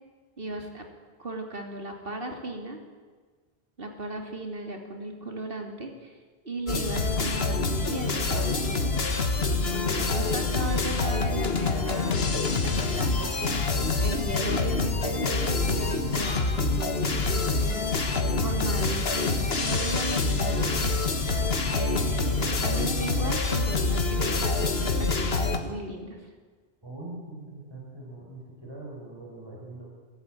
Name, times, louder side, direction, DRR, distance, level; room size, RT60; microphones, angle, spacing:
voice 1, 0.4-0.8 1.2-2.8 3.8-6.1 6.4-8.9 9.7-13.6 14.0-17.8 18.4-21.0 21.7-26.2, right 1 dB, 65° right, 3 dB, 3.1 m, -36 dB
sound 1, 6.7-25.6, left 3 dB, 75° left, 1.8 m, -26 dB
voice 2, 26.8-29.9, right 2 dB, 25° right, -3 dB, 5.8 m, -42 dB
23.0 x 13.0 x 9.2 m, 1.4 s
omnidirectional pair, 1.0 m